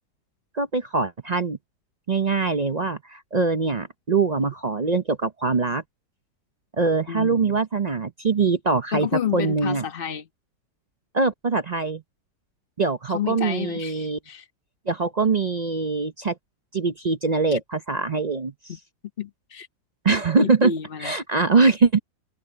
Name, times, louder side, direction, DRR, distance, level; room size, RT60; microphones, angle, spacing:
voice 1, 0.5-1.6 2.1-5.8 6.8-9.1 9.3-9.8 11.1-12.0 12.8-14.2 14.9-16.3 16.7-18.5 20.0-20.7 21.0-22.0, right 4 dB, 60° right, 0.4 m, -23 dB
voice 2, 7.1-7.6 8.9-10.3 13.1-14.5 17.5-17.6 18.7-18.8 19.2-19.7 20.4-21.2, left 7 dB, 35° left, 1.4 m, -30 dB
omnidirectional pair, 1.8 m